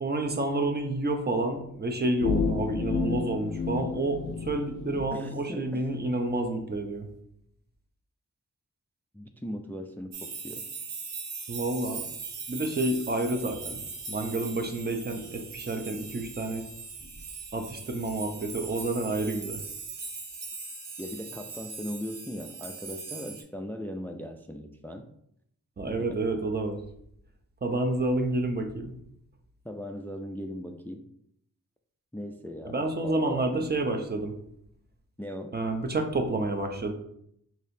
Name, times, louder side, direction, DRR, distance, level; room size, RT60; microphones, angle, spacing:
voice 1, 0.0-7.1 11.5-12.0 12.5-13.8 14.1-16.6 17.0-17.1 17.5-19.6 25.8-26.8 27.6-28.9 32.6-34.3 35.5-36.9, right 2 dB, 30° right, 4 dB, 0.6 m, -29 dB
sound 1, 2.2-5.1, left 5 dB, 75° left, 0.5 m, -30 dB
voice 2, 5.1-6.0 9.1-10.6 17.6-17.8 21.0-25.1 25.9-26.2 29.6-31.0 32.1-33.8 35.2-35.6, equal, 5° left, 5 dB, 0.3 m, -39 dB
sound 2, 10.1-23.4, right 4 dB, 80° right, 0.7 m, -40 dB
4.0 x 2.8 x 2.6 m, 0.73 s
cardioid pair, 50°, 33 cm